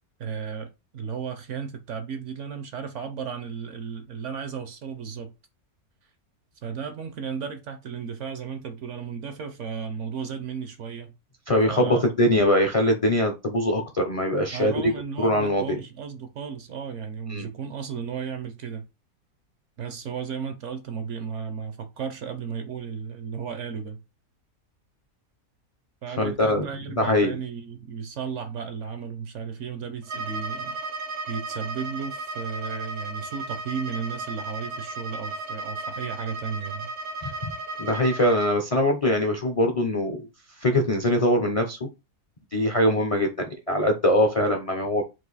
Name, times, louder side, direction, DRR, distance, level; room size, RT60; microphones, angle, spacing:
voice 1, 0.2-5.3 6.6-11.1 11.6-12.0 14.5-18.8 19.8-24.0 26.0-30.8 31.3-36.9, right 6 dB, 65° right, 0.8 m, -34 dB
voice 2, 11.5-14.9 15.2-15.8 17.3-17.5 26.2-26.7 27.0-27.3 37.2-37.5 37.8-40.3 40.6-41.9 42.5-45.0, left 1 dB, 55° left, 0.3 m, -22 dB
Bowed string instrument, 30.0-38.6, right 2 dB, 85° right, 1.3 m, -35 dB
4.6 x 2.5 x 3.9 m
omnidirectional pair, 1.6 m